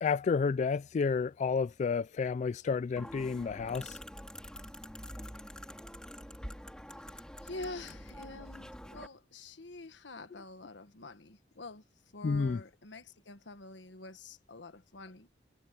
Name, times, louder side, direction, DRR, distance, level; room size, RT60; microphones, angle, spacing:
voice 1, 0.0-4.0 12.2-12.6, left 5 dB, 40° left, 0.3 m, -30 dB
sound 1, 3.0-9.1, equal, 5° left, 3.6 m, -46 dB
voice 2, 7.4-11.8 12.1-15.3, left 2 dB, 85° left, 1.5 m, -46 dB
head